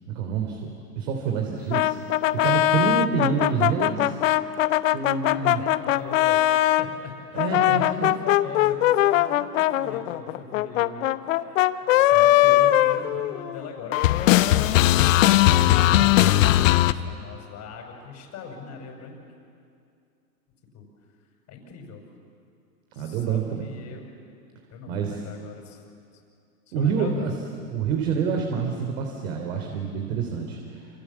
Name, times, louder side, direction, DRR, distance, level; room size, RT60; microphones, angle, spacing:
voice 1, 0.1-4.2 4.9-5.6 7.3-8.1 15.6-16.1 23.0-23.7 24.9-25.2 26.7-27.3 27.7-30.9, right 6 dB, 50° right, 3 dB, 3.6 m, -27 dB
sound 1, 1.7-6.9 7.4-13.7 13.9-16.9, left 14 dB, 55° left, 1.0 m, -20 dB
voice 2, 5.3-19.2 20.7-20.9 21.5-22.0 22.9-24.1 24.7-25.8 26.7-27.4, left 5 dB, 35° left, 0 dB, 5.7 m, -40 dB
28.0 x 27.0 x 7.3 m, 2.4 s
hypercardioid pair, 105°, 48 cm